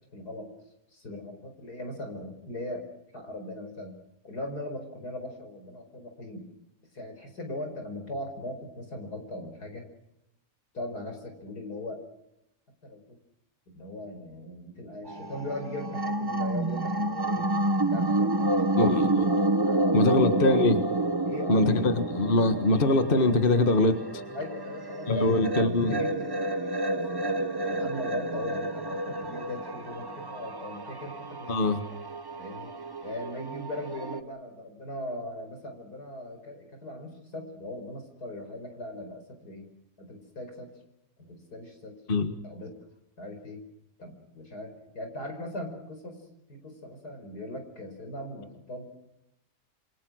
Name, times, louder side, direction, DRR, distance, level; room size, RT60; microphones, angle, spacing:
voice 1, 0.1-0.5 0.9-2.8 3.1-4.0 4.2-6.5 6.9-9.9 10.7-12.0 12.8-13.2 13.7-17.5 17.9-18.9 19.6-20.3 21.2-21.9 24.3-31.5 32.4-32.7 33.0-39.7 40.0-40.7 41.2-41.9 42.4-42.7 43.2-43.6 44.0-46.2 46.5-48.9, left 1 dB, 85° left, 5 dB, 5.5 m, -39 dB
sound 1, 15.1-34.2, right 2 dB, 20° right, 0.9 m, -29 dB
voice 2, 18.8-19.3 19.9-20.8 21.5-24.2 25.1-26.0 31.5-31.8 42.1-42.3, left 2 dB, 35° left, 9 dB, 1.7 m, -23 dB
27.5 x 24.0 x 6.4 m, 0.85 s
omnidirectional pair, 1.6 m